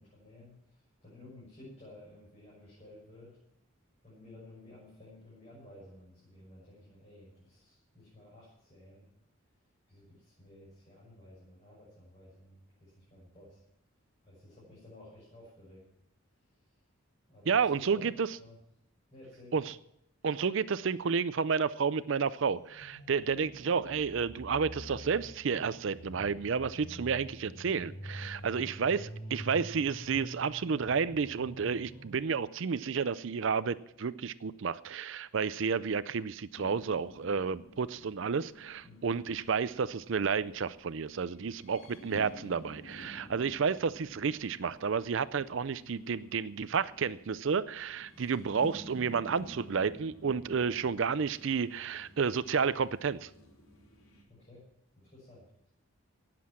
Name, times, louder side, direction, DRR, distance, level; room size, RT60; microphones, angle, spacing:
voice 1, 0.0-3.4 4.0-9.1 9.9-13.6 14.2-15.8 17.3-18.6 19.1-19.7 28.2-28.9 38.8-39.1 54.3-54.6 54.9-55.4, left 1 dB, 30° left, -7 dB, 6.7 m, -54 dB
voice 2, 17.5-18.3 19.5-19.7 20.2-29.0 29.3-53.3, right 5 dB, 60° right, 16 dB, 0.5 m, -31 dB
sound 1, 22.5-32.3, equal, 45° left, 5.6 m, -46 dB
sound 2, 36.6-54.2, equal, 90° left, 3.4 m, -52 dB
18.0 x 7.7 x 7.4 m, 0.77 s
head